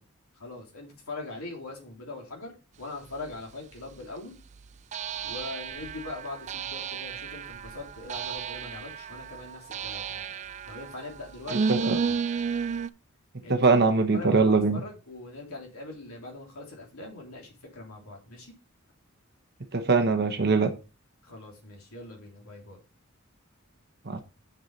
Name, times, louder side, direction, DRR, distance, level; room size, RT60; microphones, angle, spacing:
voice 1, 0.4-4.4 5.2-10.3 10.7-12.2 13.4-13.6 14.1-18.5 21.2-22.8, left 2 dB, 90° left, 3.0 m, -41 dB
sound 1, 3.3-3.4 4.9-12.9, right 6 dB, 35° right, 0.3 m, -33 dB
voice 2, 13.5-14.8 19.7-20.7 24.1-24.2, right 4 dB, 50° right, 1.0 m, -22 dB
7.0 x 6.7 x 4.1 m
head